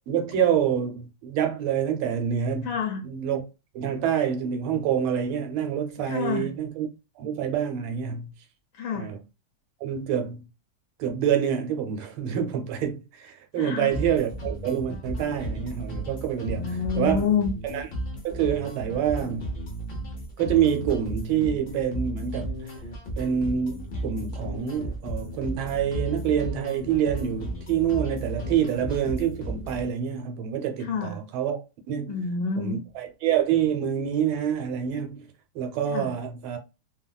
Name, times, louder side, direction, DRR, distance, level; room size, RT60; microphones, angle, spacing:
voice 1, 0.1-2.7 3.0-3.4 3.7-6.9 7.2-8.3 8.9-9.2 9.8-10.5 11.0-16.7 17.0-17.2 17.6-17.8 18.2-19.5 20.4-22.7 23.2-31.6 31.9-32.2 32.6-35.3 35.5-36.6, right 9 dB, 85° right, 1.5 m, -27 dB
voice 2, 2.6-3.0 6.0-6.5 8.7-9.1 13.6-13.9 16.5-17.5 30.8-31.2 32.1-32.8 35.9-36.1, left 5 dB, 75° left, 1.2 m, -28 dB
sound 1, 13.9-29.9, right 1 dB, 60° left, 0.6 m, -34 dB
3.4 x 2.2 x 2.2 m
omnidirectional pair, 2.2 m